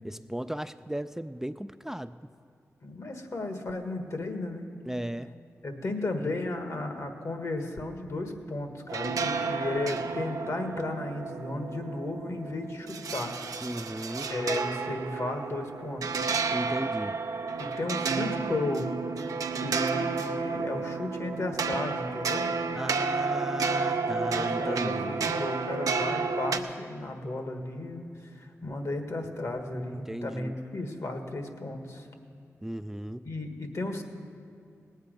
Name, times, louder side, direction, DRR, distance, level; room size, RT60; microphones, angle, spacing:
voice 1, 0.0-2.2 4.9-5.3 13.6-14.3 16.5-17.2 22.7-25.3 29.9-30.5 32.6-33.3, right 1 dB, 5° right, 11 dB, 0.3 m, -36 dB
voice 2, 2.8-4.7 5.6-13.4 14.3-16.2 17.6-18.9 19.2-22.5 24.0-32.1 33.2-34.0, left 2 dB, 60° left, 5 dB, 1.5 m, -34 dB
sound 1, 8.9-26.6, right 4 dB, 80° right, 0.6 m, -31 dB
18.5 x 8.3 x 5.3 m, 2.3 s
cardioid pair, 50°, 6 cm